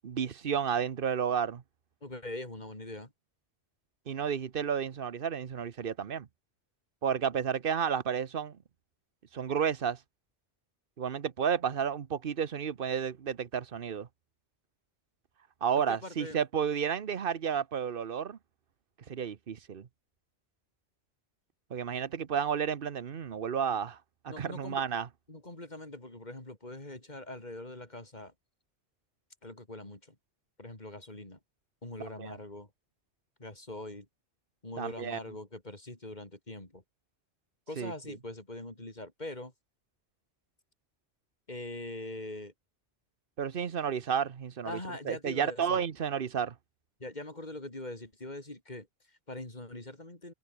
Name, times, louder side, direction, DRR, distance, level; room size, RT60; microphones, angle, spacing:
voice 1, 0.0-1.6 4.1-6.3 7.0-8.6 9.3-10.0 11.0-14.1 15.6-18.4 19.1-19.9 21.7-24.0 24.2-25.1 32.2-32.4 34.8-35.2 37.8-37.9 43.4-44.8 45.1-46.5, right 7 dB, 55° right, 1.1 m, -31 dB
voice 2, 2.0-3.1 15.9-16.4 24.3-24.8 25.3-28.3 29.4-30.2 30.6-31.4 31.8-32.7 33.4-34.1 34.6-36.8 37.7-39.5 41.5-42.5 44.6-45.8 47.0-50.3, left 2 dB, 40° left, 4.4 m, -42 dB
open air
omnidirectional pair, 1.2 m